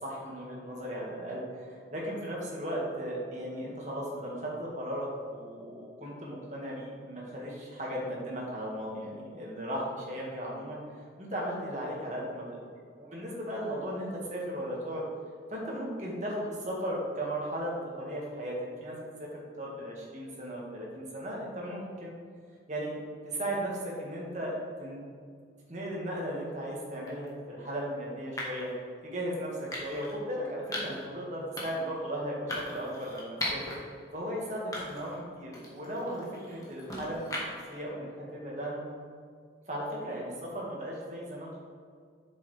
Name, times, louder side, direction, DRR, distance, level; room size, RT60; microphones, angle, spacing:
voice 1, 0.0-10.8 11.2-12.6 13.0-15.0 15.5-19.3 19.6-22.1 22.7-22.9 23.2-24.5 24.8-25.0 25.7-28.7 29.0-33.7 34.1-37.3 37.7-38.9 39.7-41.6, equal, 40° right, -4 dB, 1.9 m, -36 dB
sound 1, 27.1-27.3 28.4-28.7 29.7-30.1 30.7-31.0 31.6-31.9 32.5-33.8 34.2-34.3 34.7-35.2 35.5-37.7, left 1 dB, 20° left, 1.4 m, -38 dB
8.3 x 6.8 x 3.4 m, 2.1 s
head